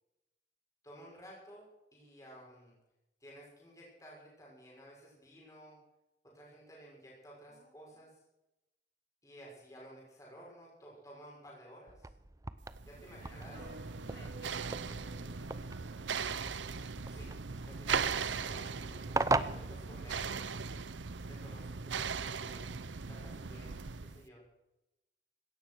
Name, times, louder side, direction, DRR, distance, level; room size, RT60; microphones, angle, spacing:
voice 1, 0.8-2.8 3.2-5.8 6.3-8.2 9.2-12.1 12.8-13.5 17.0-17.3 17.6-20.8 21.3-22.6 23.1-24.4, equal, 20° left, -4 dB, 6.2 m, -54 dB
voice 2, 7.4-8.0 13.2-13.7 14.1-16.4, left 1 dB, 55° left, -2 dB, 6.5 m, -59 dB
sound 1, 11.9-20.6, right 3 dB, 20° right, 0.5 m, -40 dB
sound 2, 12.7-24.2, right 5 dB, 90° right, 0.8 m, -39 dB
sound 3, 13.5-16.9 17.3-17.4 17.7-20.6, right 3 dB, 55° right, 2.4 m, -54 dB
17.0 x 13.5 x 6.4 m, 0.92 s
head